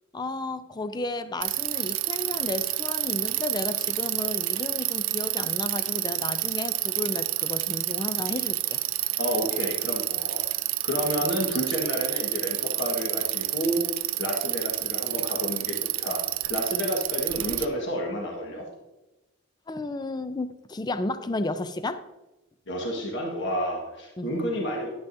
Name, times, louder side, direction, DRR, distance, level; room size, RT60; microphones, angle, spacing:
voice 1, 0.1-8.8 11.2-11.3 19.7-22.0 24.2-24.3, left 2 dB, 20° left, 11 dB, 0.4 m, -33 dB
Bicycle, 1.4-17.6, right 17 dB, 80° right, 0.4 m, -29 dB
voice 2, 9.2-10.5 10.8-13.8 14.2-18.7 22.7-24.9, equal, 60° left, -1 dB, 1.5 m, -30 dB
10.5 x 10.0 x 2.7 m, 1.0 s
head